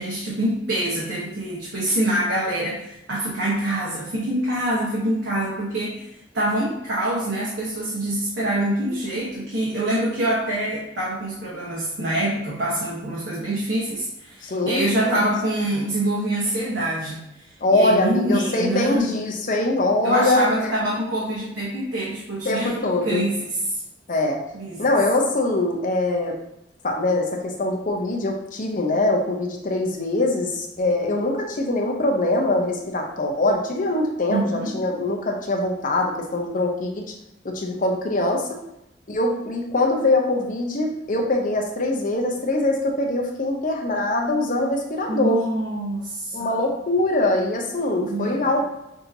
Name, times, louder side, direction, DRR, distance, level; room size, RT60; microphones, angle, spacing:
voice 1, 0.0-6.1 6.3-17.2 17.7-19.0 20.0-22.8 23.0-23.5 24.5-24.8 34.3-34.8 45.1-46.6 48.0-48.6, right 1 dB, 70° right, -6 dB, 1.0 m, -25 dB
voice 2, 14.4-15.2 17.6-20.7 22.4-23.3 24.1-24.4 24.8-26.3 26.8-37.1 37.4-38.6 39.1-45.4 46.3-48.6, left 2 dB, 50° left, 1 dB, 0.8 m, -23 dB
6.3 x 2.8 x 2.6 m, 0.85 s
head